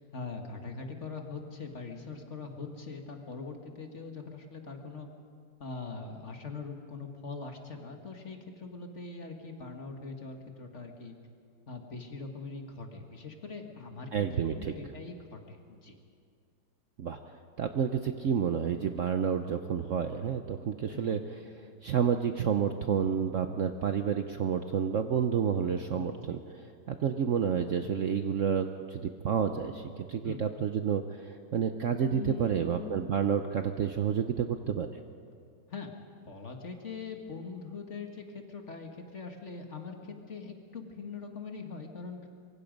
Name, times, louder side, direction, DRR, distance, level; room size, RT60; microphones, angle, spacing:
voice 1, 0.0-5.1 5.6-11.1 11.7-16.0 20.9-21.2 25.9-26.4 30.2-30.5 32.1-32.9 35.7-35.9 36.2-42.2, left 4 dB, 40° left, 3 dB, 1.9 m, -42 dB
voice 2, 14.1-14.7 17.0-17.2 17.6-21.2 21.8-26.4 26.9-34.9, right 7 dB, 55° right, 7 dB, 0.9 m, -29 dB
25.0 x 23.0 x 5.2 m, 2.3 s
omnidirectional pair, 1.9 m